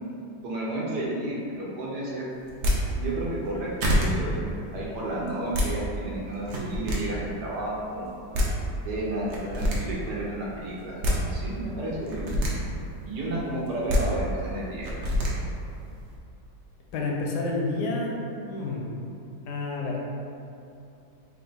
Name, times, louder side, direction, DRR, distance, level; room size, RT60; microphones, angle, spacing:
voice 1, 0.4-2.3 2.9-8.1 8.8-12.3 13.0-15.0, right 1 dB, 75° right, -5 dB, 1.4 m, -32 dB
sound 1, 2.5-2.8 3.4-3.5 3.8-4.1 5.3-5.7 6.4-7.0 8.0-8.1 8.3-8.5 9.3-9.8 10.8-11.2 12.0-12.5 13.6-14.0 14.8-15.3, equal, 60° right, 0.8 m, -25 dB
voice 2, 16.9-18.2 18.5-18.9 19.5-20.0, left 3 dB, 75° left, -2 dB, 1.2 m, -29 dB
3.9 x 2.4 x 3.8 m, 2.7 s
omnidirectional pair, 1.8 m